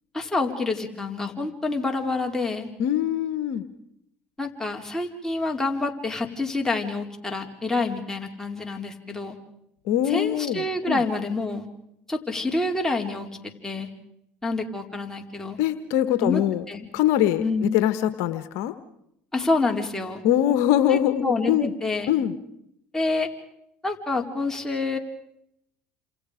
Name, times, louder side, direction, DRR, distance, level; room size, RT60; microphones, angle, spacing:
voice 1, 0.1-2.7 4.4-9.4 10.1-11.7 12.1-13.3 13.6-13.9 14.4-15.6 16.2-16.4 16.7-16.9 17.4-17.8 19.3-20.2 20.9-22.1 22.9-23.3 23.8-25.0, left 3 dB, 10° left, 1 dB, 4.2 m, -27 dB
voice 2, 2.8-3.6 9.9-11.0 15.6-16.6 16.9-18.7 20.2-21.7 22.1-22.3, left 11 dB, 70° left, 12 dB, 1.3 m, -23 dB
29.0 x 27.5 x 5.1 m, 0.76 s
hypercardioid pair, 75°, 5 cm